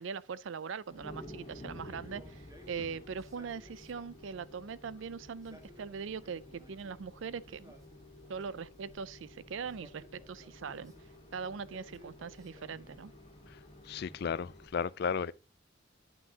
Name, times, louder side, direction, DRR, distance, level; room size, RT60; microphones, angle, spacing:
voice 1, 0.0-7.7 8.3-10.9 11.3-13.1, right 6 dB, 70° right, 0.4 m, -41 dB
sound 1, 0.9-14.7, left 1 dB, 25° left, 1.7 m, -52 dB
Male speech man speaking, 1.7-4.3 5.3-7.0 7.4-8.7 9.6-11.1 11.7-13.2, equal, 15° right, 1.4 m, -59 dB
voice 2, 13.9-15.3, left 6 dB, 55° left, 0.4 m, -34 dB
9.4 x 5.9 x 2.8 m
head